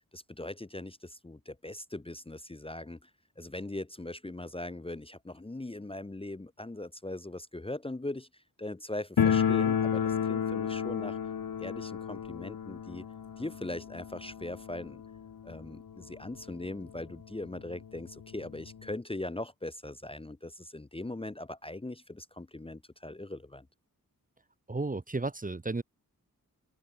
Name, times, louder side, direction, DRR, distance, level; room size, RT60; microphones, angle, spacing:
voice 1, 0.1-3.1 3.4-11.2 11.6-13.0 13.4-15.0 15.4-23.7, left 2 dB, 15° left, 0.9 m, -40 dB
sound 1, 9.2-15.9 16.1-16.2 16.5-16.6 17.3-17.4 17.7-18.9, left 7 dB, 75° left, 1.3 m, -31 dB
voice 2, 24.7-25.8, right 3 dB, 25° right, 1.1 m, -33 dB
open air
wide cardioid pair, 80°, 35 cm